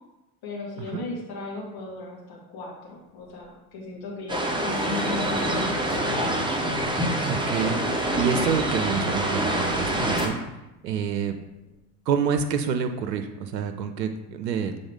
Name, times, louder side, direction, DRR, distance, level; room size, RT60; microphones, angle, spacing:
voice 1, 0.4-6.2, left 3 dB, 50° left, -3 dB, 2.2 m, -36 dB
sound 1, 3.0-3.4 4.7-8.0 8.6-8.7 10.2-10.4 11.3-11.8, left 4 dB, 85° left, 1.6 m, -44 dB
sound 2, 4.3-10.3, right 1 dB, 10° right, 1.0 m, -26 dB
voice 2, 7.3-7.8 8.1-10.4 10.8-11.4 12.1-14.8, right 7 dB, 80° right, 7 dB, 0.6 m, -27 dB
6.9 x 3.8 x 3.7 m, 0.96 s
hypercardioid pair, 70°, 49 cm